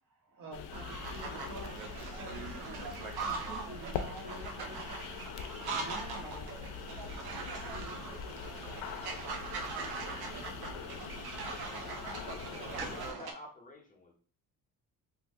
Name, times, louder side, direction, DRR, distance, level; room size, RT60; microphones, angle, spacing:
voice 1, 0.0-2.9 3.2-5.2 5.7-6.6 7.7-9.0, right 1 dB, 60° right, 0 dB, 1.2 m, -49 dB
sound 1, 0.5-13.1, left 7 dB, 85° left, 0.5 m, -43 dB
sound 2, 0.7-13.3, right 4 dB, 80° right, 0.7 m, -41 dB
voice 2, 7.2-7.9 12.8-13.0, right 2 dB, 20° right, 0 dB, 0.4 m, -52 dB
voice 3, 12.5-14.1, left 2 dB, 20° left, -1 dB, 0.6 m, -50 dB
2.6 x 2.5 x 3.4 m, 0.42 s
cardioid pair, 145°, 37 cm